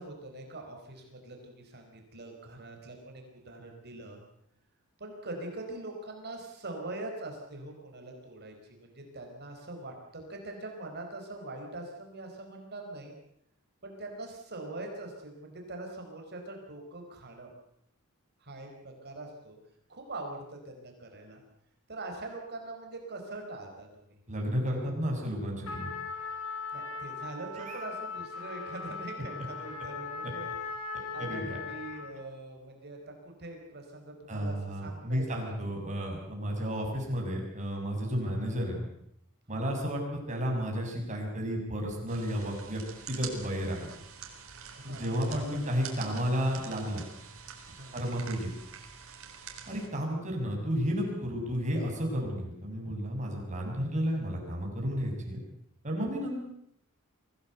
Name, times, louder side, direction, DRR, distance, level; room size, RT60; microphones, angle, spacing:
voice 1, 0.0-4.2 5.0-13.1 13.8-17.5 18.4-19.6 19.9-21.4 21.9-24.2 26.7-30.5 30.8-35.5 39.5-39.6 44.7-45.8 47.8-47.9, right 2 dB, 50° right, 2 dB, 4.6 m, -43 dB
voice 2, 24.3-25.9 27.5-27.8 31.2-31.6 34.3-38.9 39.5-42.8 43.1-43.9 44.8-47.0 47.9-48.5 49.7-55.4 55.8-56.4, equal, 35° right, 0 dB, 6.8 m, -32 dB
Trumpet, 25.6-32.2, left 5 dB, 70° left, 5.3 m, -39 dB
sound 1, 42.1-49.9, right 7 dB, 70° right, 4.2 m, -46 dB
24.0 x 16.5 x 8.1 m, 0.74 s
head